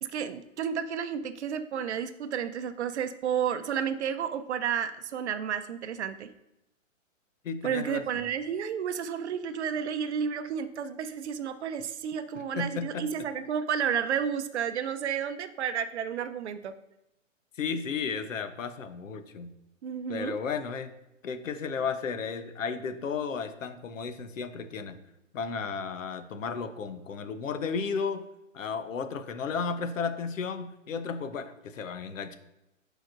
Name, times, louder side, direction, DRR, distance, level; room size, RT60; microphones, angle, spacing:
voice 1, 0.0-6.3 7.6-16.7 19.8-20.3, right 8 dB, 55° right, 11 dB, 0.6 m, -31 dB
voice 2, 7.4-8.0 12.6-13.1 17.6-19.5 20.1-20.9 21.2-25.0 25.3-28.2 28.5-32.4, left 5 dB, 75° left, 10 dB, 1.0 m, -33 dB
10.5 x 5.1 x 2.6 m, 0.87 s
hypercardioid pair, 150°, 40 cm